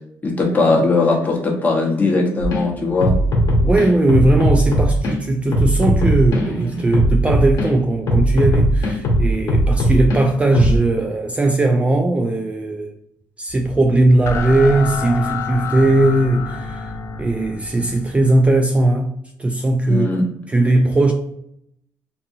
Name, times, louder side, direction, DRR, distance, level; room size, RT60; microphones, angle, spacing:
voice 1, 0.2-3.1 19.9-20.2, left 3 dB, 25° left, 1.0 m, -18 dB
sound 1, 2.4-2.6 3.0-5.2 5.5-7.7 8.1-10.2 10.5-10.8, equal, 75° left, 0.8 m, -18 dB
voice 2, 3.6-12.9 13.4-16.9 17.2-20.1 20.5-21.1, right 2 dB, 20° right, 0.3 m, -18 dB
sound 2, 13.5-18.6, left 4 dB, 50° left, 0.4 m, -29 dB
2.6 x 2.6 x 2.6 m
cardioid pair, 85°, 7 cm